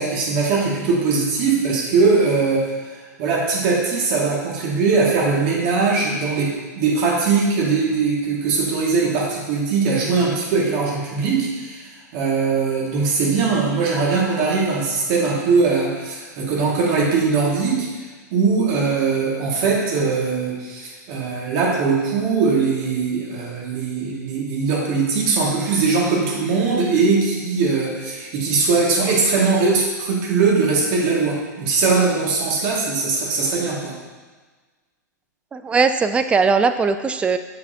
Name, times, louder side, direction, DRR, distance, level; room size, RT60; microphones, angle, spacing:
voice 1, 0.0-2.7 3.2-11.9 12.1-17.9 18.3-34.0, right 4 dB, 45° right, -3 dB, 2.0 m, -20 dB
voice 2, 35.5-37.4, right 4 dB, 10° right, 10 dB, 0.3 m, -19 dB
6.9 x 6.6 x 2.8 m, 1.3 s
figure-of-eight pair, 100°, 10 cm